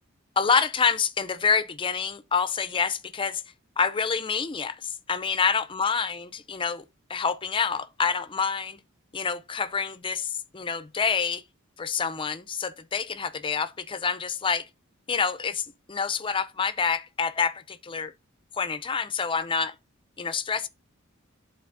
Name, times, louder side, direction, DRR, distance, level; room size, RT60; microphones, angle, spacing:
voice 1, 0.4-3.4 3.8-6.8 7.1-8.8 9.1-11.4 11.8-14.7 15.1-18.1 18.6-19.7 20.2-20.7, left 6 dB, 25° left, 0.5 m, -27 dB
12.0 x 4.0 x 2.5 m
head